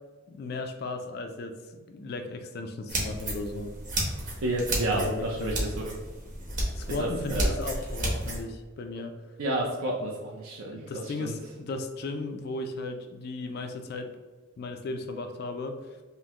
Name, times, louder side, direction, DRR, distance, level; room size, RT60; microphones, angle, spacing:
voice 1, 0.3-3.7 4.9-5.7 6.7-9.2 10.7-14.1 14.6-15.8, left 2 dB, 50° left, 6 dB, 0.3 m, -36 dB
sound 1, 2.9-8.4, right 1 dB, 35° right, 1.0 m, -32 dB
voice 2, 4.4-5.9 7.0-7.5 9.4-11.3, right 1 dB, 80° right, -2 dB, 0.6 m, -30 dB
5.5 x 2.1 x 3.0 m, 1.3 s
head